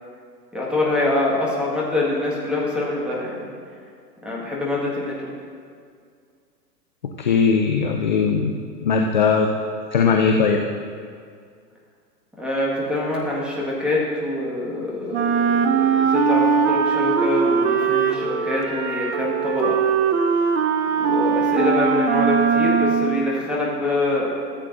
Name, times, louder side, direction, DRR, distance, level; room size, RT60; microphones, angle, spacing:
voice 1, 0.5-3.5 4.2-5.3 12.4-19.8 21.0-24.3, left 2 dB, ahead, -5 dB, 1.8 m, -25 dB
voice 2, 7.2-8.5 8.8-9.5 9.9-10.6, left 5 dB, 30° left, 2 dB, 0.4 m, -19 dB
Wind instrument woodwind instrument, 15.1-23.3, right 6 dB, 45° right, 0.7 m, -20 dB
14.5 x 8.1 x 2.7 m, 2.2 s
figure-of-eight pair, 110°, 50 cm